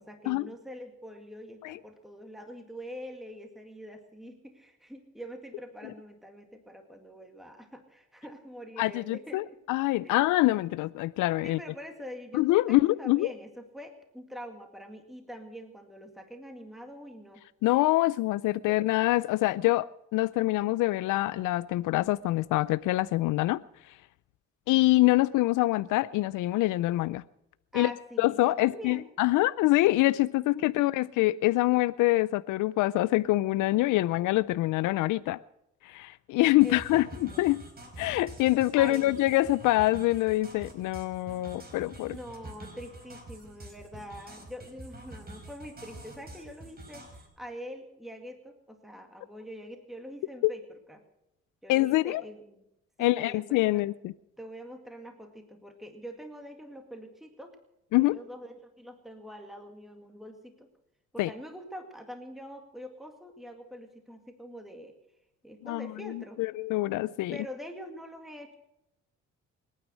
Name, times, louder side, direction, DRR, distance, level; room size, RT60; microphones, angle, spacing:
voice 1, 0.0-9.6 10.0-10.2 11.4-17.4 18.7-18.8 27.7-29.1 30.4-30.9 36.6-37.0 37.3-37.4 38.7-39.2 42.1-51.0 51.6-52.6 53.0-53.8 54.4-57.6 58.0-60.7 61.1-65.0 65.4-66.4 67.3-68.6, equal, ahead, 2.0 m, -44 dB
voice 2, 8.8-11.6 12.3-13.3 17.6-23.6 23.9-24.0 24.7-27.2 27.7-27.9 28.2-35.4 35.8-37.6 38.0-42.2 50.4-50.5 51.7-52.2 53.0-54.1 57.9-58.2 61.2-61.3 65.6-67.4, left 18 dB, 85° left, 0.5 m, -25 dB
sound 1, 36.6-47.3, right 1 dB, 30° right, 4.6 m, -47 dB
24.0 x 9.4 x 6.4 m
cardioid pair, 90°, 30 cm